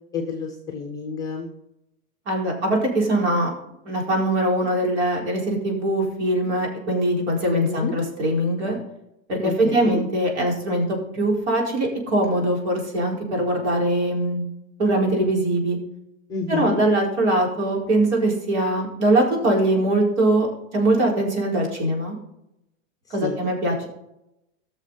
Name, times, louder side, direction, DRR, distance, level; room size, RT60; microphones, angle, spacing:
voice 1, 0.1-1.5 7.5-7.9 9.4-10.0 16.3-16.8 23.1-23.4, left 5 dB, 10° left, 1 dB, 0.9 m, -29 dB
voice 2, 2.3-3.5 3.8-8.8 9.3-14.4 14.8-15.8 16.5-20.5 20.7-22.1 23.1-23.9, right 1 dB, 55° right, -1 dB, 4.4 m, -22 dB
18.0 x 6.6 x 4.0 m, 0.83 s
supercardioid pair, 180°, 40 cm